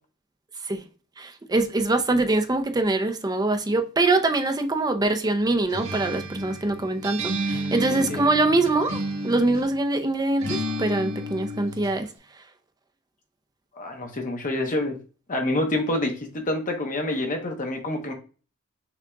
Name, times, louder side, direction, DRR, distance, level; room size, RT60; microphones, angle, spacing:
voice 1, 1.2-12.1, right 2 dB, 20° right, 0.5 m, -24 dB
Acoustic guitar, 5.7-9.8 10.4-12.0, right 1 dB, 75° right, 1.3 m, -31 dB
voice 2, 7.9-8.2 13.7-15.0 15.3-18.1, left 1 dB, 40° left, 1.0 m, -27 dB
5.9 x 2.8 x 2.3 m
head